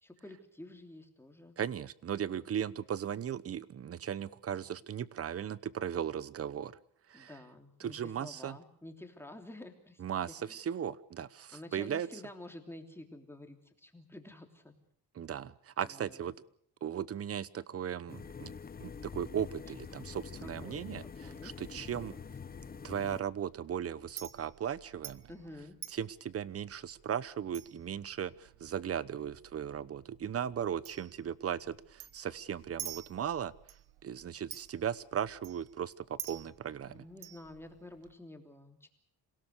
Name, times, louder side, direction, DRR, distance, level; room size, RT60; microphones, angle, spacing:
voice 1, 0.0-1.5 7.1-10.7 11.5-14.7 15.9-16.3 20.4-20.9 21.2-21.5 25.3-25.8 36.9-38.9, left 1 dB, 5° left, 4 dB, 3.2 m, -50 dB
voice 2, 1.6-6.8 7.1-7.3 7.8-8.6 10.0-12.1 15.1-16.3 16.8-18.5 18.8-21.0 21.4-22.1 22.8-25.2 25.9-33.5 34.0-37.0, right 9 dB, 35° right, 19 dB, 1.0 m, -37 dB
sound 1, 18.1-23.2, left 6 dB, 25° left, 0.9 m, -46 dB
Chink clink, 19.9-38.1, right 12 dB, 70° right, 1.5 m, -51 dB
27.0 x 17.5 x 6.7 m, 0.66 s
cardioid pair, 115°, 39 cm